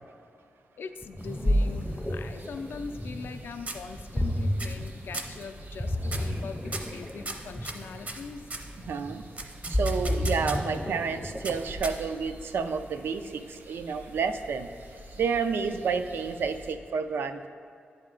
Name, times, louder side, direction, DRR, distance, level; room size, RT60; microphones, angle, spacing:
voice 1, 0.8-8.4, left 5 dB, 75° left, 8 dB, 0.4 m, -41 dB
Ocean, 1.0-11.8, left 1 dB, 10° left, 0.5 m, -31 dB
sound 1, 1.2-16.7, right 1 dB, 65° right, 1.0 m, -48 dB
sound 2, 2.4-3.4 3.7-4.2 4.6-4.9 5.1-5.4 6.1-6.4 6.7-8.7 9.4-10.8 11.4-12.3, right 2 dB, 40° right, 0.6 m, -38 dB
voice 2, 8.9-9.2 9.7-14.7 15.2-17.5, right 5 dB, 85° right, 8 dB, 0.4 m, -30 dB
9.5 x 4.2 x 3.8 m, 2.4 s
cardioid pair, 75°, 4 cm